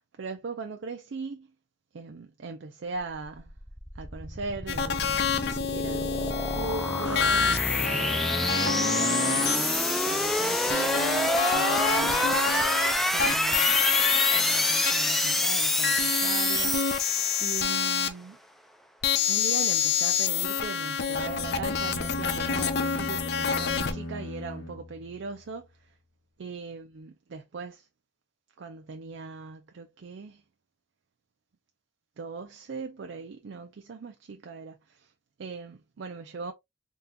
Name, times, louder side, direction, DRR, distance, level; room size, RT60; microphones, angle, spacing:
voice 1, 0.2-1.5 1.9-3.5 4.0-5.4 5.7-12.6 13.1-13.8 14.3-16.8 17.4-18.4 19.3-25.7 26.4-27.9 28.6-30.4 32.2-35.1 35.4-36.5, right 4 dB, 65° right, 0.4 m, -39 dB
sound 1, 3.2-17.7, equal, ahead, 0.3 m, -27 dB
sound 2, 4.7-12.9 13.2-18.1 19.0-23.9, left 7 dB, 60° left, 0.5 m, -28 dB
sound 3, 21.1-25.5, left 1 dB, 80° left, 0.9 m, -38 dB
3.6 x 2.3 x 2.6 m
head